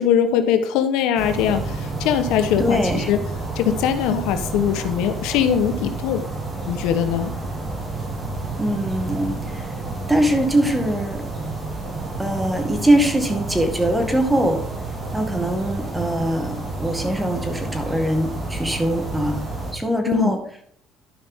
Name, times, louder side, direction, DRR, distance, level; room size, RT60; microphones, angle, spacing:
voice 1, 0.0-3.2 3.5-6.2 6.7-7.3 20.1-20.3, left 8 dB, 90° left, 9 dB, 1.0 m, -21 dB
sound 1, 1.2-19.7, right 2 dB, 25° right, 3.4 m, -30 dB
voice 2, 2.6-3.1 8.6-9.7 10.1-11.3 12.2-14.7 15.1-19.4 19.7-20.4, right 1 dB, 10° right, 5 dB, 1.9 m, -22 dB
12.5 x 5.5 x 3.7 m, 0.64 s
cardioid pair, 110°, 0 cm